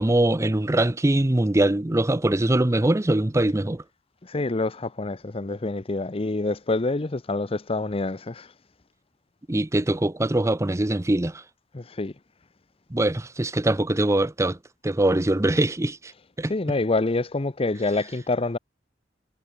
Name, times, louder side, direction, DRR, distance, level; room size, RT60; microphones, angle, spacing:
voice 1, 0.0-3.8 9.5-11.4 12.9-14.6 14.8-16.1 16.4-16.5, right 1 dB, 15° right, 0.6 m, -22 dB
voice 2, 4.2-8.5 11.7-12.1 16.1-18.6, left 2 dB, 30° left, 0.7 m, -27 dB
head